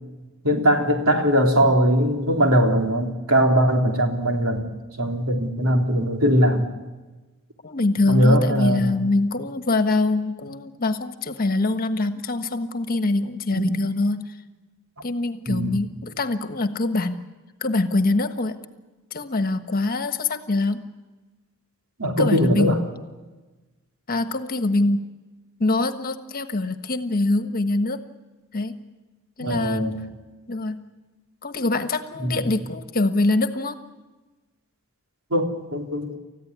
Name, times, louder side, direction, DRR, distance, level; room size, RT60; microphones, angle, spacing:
voice 1, 0.4-4.7 5.0-6.7 8.1-8.9 13.5-13.8 15.5-15.7 22.0-22.8 29.4-30.0 32.2-32.4 35.3-36.2, equal, 70° right, 3 dB, 3.6 m, -20 dB
voice 2, 7.6-14.3 15.0-17.2 17.6-18.5 19.1-20.8 22.2-22.8 24.1-25.1 25.6-28.0 28.5-28.8 29.4-30.0 30.5-30.8 31.4-33.8, left 2 dB, 40° left, 9 dB, 1.4 m, -24 dB
29.5 x 15.0 x 9.7 m, 1.2 s
head